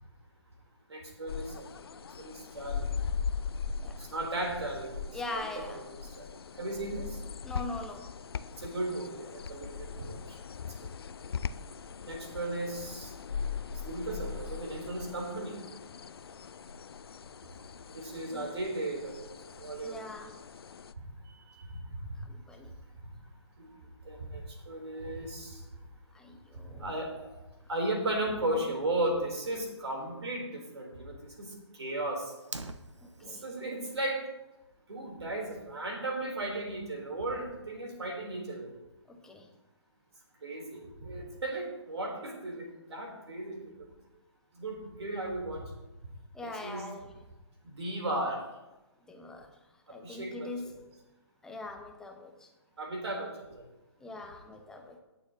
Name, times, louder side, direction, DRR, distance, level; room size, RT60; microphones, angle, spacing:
voice 1, 0.9-1.6 2.2-2.9 4.0-5.8 6.2-6.3 6.6-7.1 8.6-10.2 12.0-13.1 13.9-15.6 17.9-19.2 19.6-20.1 21.6-21.7 23.6-23.7 24.1-25.6 26.8-27.3 27.7-31.5 31.8-32.2 33.2-34.2 34.9-38.7 40.4-43.6 44.6-45.7 46.4-46.8 47.7-48.4 50.0-50.5 52.8-53.5, right 1 dB, 65° right, 0 dB, 3.7 m, -35 dB
sound 1, 1.3-20.9, left 6 dB, 55° left, 0.5 m, -40 dB
voice 2, 5.1-5.9 7.4-8.2 18.3-18.6 19.8-20.4 22.2-22.8 26.1-26.9 28.5-28.7 33.0-33.4 39.1-39.5 46.3-47.2 49.1-49.6 49.9-50.9 51.4-52.5 54.0-55.0, left 2 dB, 5° left, 3 dB, 0.9 m, -42 dB
Fire, 32.4-33.4, right 3 dB, 80° right, 0.9 m, -42 dB
20.0 x 7.1 x 3.0 m, 1.0 s
figure-of-eight pair, 130°, 15 cm